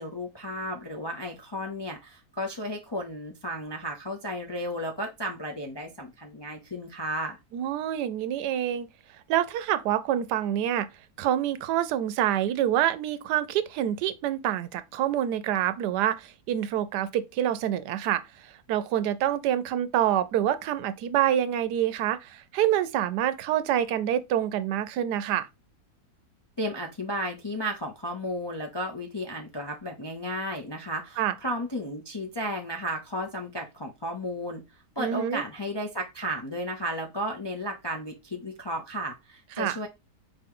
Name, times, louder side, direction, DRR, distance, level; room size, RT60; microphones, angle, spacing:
voice 1, 0.0-7.4 26.6-39.9, equal, 40° left, 0.3 m, -33 dB
voice 2, 7.5-8.9 9.3-10.9 11.2-25.5 31.2-31.3 35.0-35.4 39.6-39.8, right 11 dB, 85° right, 1.2 m, -27 dB
4.8 x 3.0 x 3.7 m
omnidirectional pair, 1.7 m